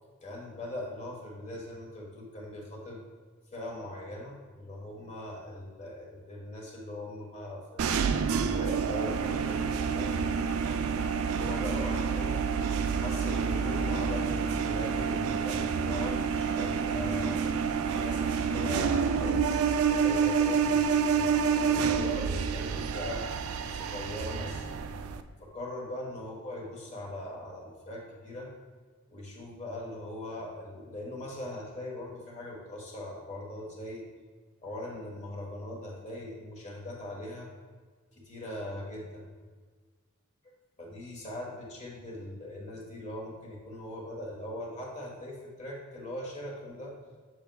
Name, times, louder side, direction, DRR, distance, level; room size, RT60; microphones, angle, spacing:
voice 1, 0.2-3.0 3.5-10.3 11.3-12.4 12.9-17.4 17.7-23.3 23.7-24.7 25.4-28.5 29.1-34.0 34.6-37.5 38.1-39.2 40.4-40.5 40.8-46.9, left 1 dB, 35° left, -2 dB, 1.4 m, -40 dB
sound 1, 7.8-25.2, right 6 dB, 80° right, 0.4 m, -28 dB
7.7 x 6.9 x 2.3 m, 1.5 s
head